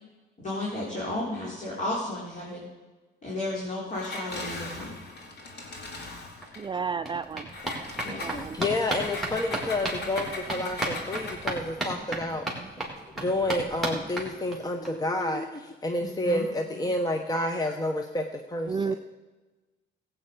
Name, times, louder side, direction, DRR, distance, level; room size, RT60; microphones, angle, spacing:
voice 1, 0.4-2.7 3.2-5.0 8.0-8.2 16.0-16.4, left 1 dB, 40° left, -5 dB, 3.9 m, -33 dB
Engine, 3.9-6.7 7.5-11.6, left 2 dB, 55° left, 2.5 m, -39 dB
sound 1, 6.1-6.2 6.4-14.9 15.2-15.3 15.6-15.7 15.9-16.0, right 1 dB, ahead, 3.7 m, -35 dB
voice 2, 6.6-7.5 8.2-8.6 18.7-19.0, right 5 dB, 25° right, 10 dB, 0.4 m, -31 dB
voice 3, 8.3-12.4 13.2-19.0, left 1 dB, 20° left, 5 dB, 1.0 m, -29 dB
15.5 x 8.9 x 5.2 m, 1.2 s
cardioid pair, 90°, 20 cm